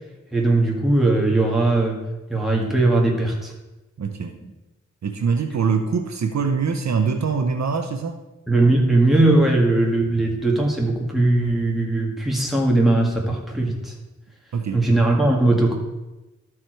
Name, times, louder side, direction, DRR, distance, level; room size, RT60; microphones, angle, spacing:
voice 1, 0.3-2.0 2.3-3.5 8.5-13.9 14.7-15.7, right 2 dB, ahead, -2 dB, 1.9 m, -19 dB
voice 2, 4.0-4.4 5.0-8.2 14.5-14.8, right 5 dB, 65° right, 6 dB, 0.7 m, -23 dB
12.5 x 4.7 x 4.6 m, 1.1 s
wide cardioid pair, 100°, 30 cm